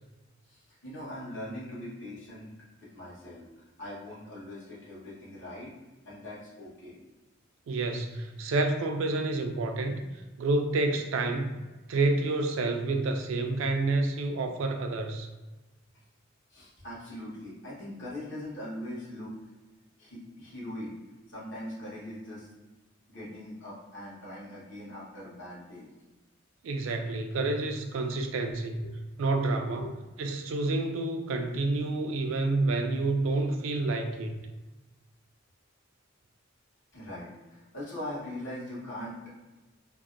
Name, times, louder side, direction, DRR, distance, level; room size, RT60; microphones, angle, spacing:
voice 1, 0.4-2.5 2.8-5.7 6.0-7.0 16.5-19.4 20.0-20.9 21.3-22.5 23.1-25.9 28.4-29.0 29.8-29.9 36.9-39.3, left 1 dB, 65° left, -7 dB, 1.1 m, -41 dB
voice 2, 7.7-10.0 10.4-11.6 11.9-15.3 26.6-28.9 29.2-29.9 30.2-34.3, right 2 dB, 70° right, 5 dB, 0.3 m, -29 dB
2.7 x 2.1 x 2.4 m, 1.1 s
head